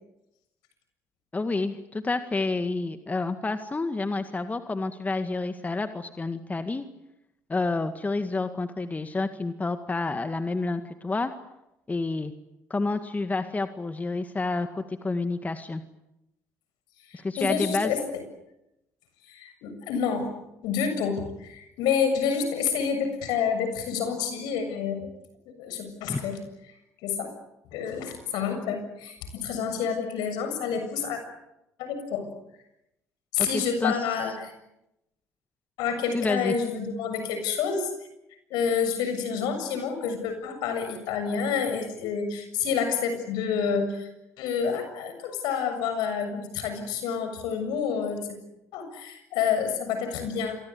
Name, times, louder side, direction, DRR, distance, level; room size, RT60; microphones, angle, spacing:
voice 1, 1.3-6.8 7.5-11.3 11.9-12.3 12.7-15.8 17.1-17.9 26.1-26.2 33.5-34.0 36.1-36.5, left 3 dB, 20° left, 9 dB, 2.0 m, -29 dB
voice 2, 17.1-18.0 19.3-20.3 20.6-25.1 25.6-26.4 27.0-27.3 27.7-31.2 31.8-32.3 33.3-34.5 35.8-37.9 38.5-44.1 44.4-48.2 48.7-50.6, left 6 dB, 65° left, 8 dB, 7.3 m, -28 dB
28.0 x 24.0 x 8.6 m, 0.88 s
hypercardioid pair, 55°, 8 cm